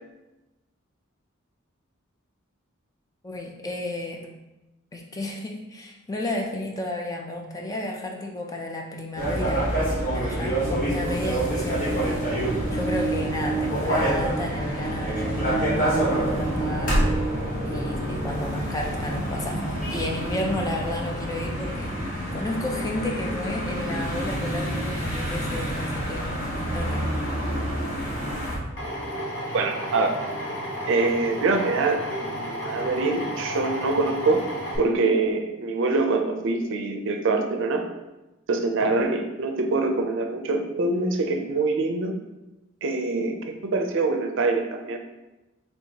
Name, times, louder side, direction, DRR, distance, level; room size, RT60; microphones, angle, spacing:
voice 1, 3.2-4.2 4.9-9.7 10.1-17.0 17.7-19.6 19.9-26.5 26.7-27.1, left 1 dB, 15° left, 1 dB, 0.4 m, -32 dB
sound 1, 9.1-28.6, right 1 dB, 40° left, 1.2 m, -27 dB
Drill, 28.8-34.8, equal, 60° left, 1.1 m, -32 dB
voice 2, 29.5-30.1 30.9-34.4 34.8-37.8 38.5-42.1 42.8-45.0, right 3 dB, 65° right, 4 dB, 0.5 m, -24 dB
4.4 x 3.4 x 2.8 m, 1.0 s
head